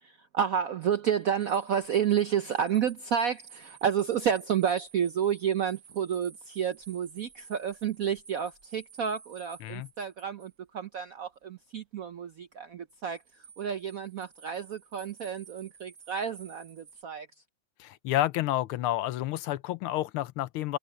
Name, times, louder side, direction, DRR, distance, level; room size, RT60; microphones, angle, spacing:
voice 1, 0.0-13.2 13.6-17.3, right 8 dB, 70° right, 0.8 m, -30 dB
sound 1, 1.2-10.6 13.0-17.0, right 6 dB, 45° right, 2.5 m, -53 dB
voice 2, 17.8-20.8, left 14 dB, 80° left, 1.6 m, -30 dB
omnidirectional pair, 2.3 m